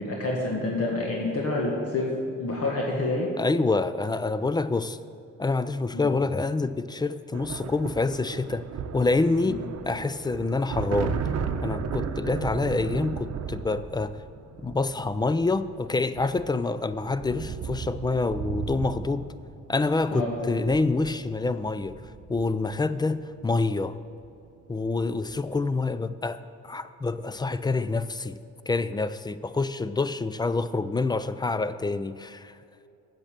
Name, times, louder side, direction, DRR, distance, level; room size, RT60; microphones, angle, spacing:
voice 1, 0.0-3.3 5.9-6.1 9.4-9.6 20.1-20.4, left 2 dB, 50° left, -2 dB, 1.6 m, -28 dB
voice 2, 3.4-5.0 5.4-8.6 8.9-11.2 11.6-14.2 14.6-19.3 19.7-22.0 22.3-24.0 24.7-28.4 28.7-32.5, left 3 dB, 15° left, 13 dB, 0.3 m, -27 dB
sound 1, 7.3-23.1 24.2-24.5 24.8-25.5, right 6 dB, 55° right, 0.8 m, -35 dB
8.1 x 7.4 x 7.3 m, 2.7 s
cardioid pair, 90°, 30 cm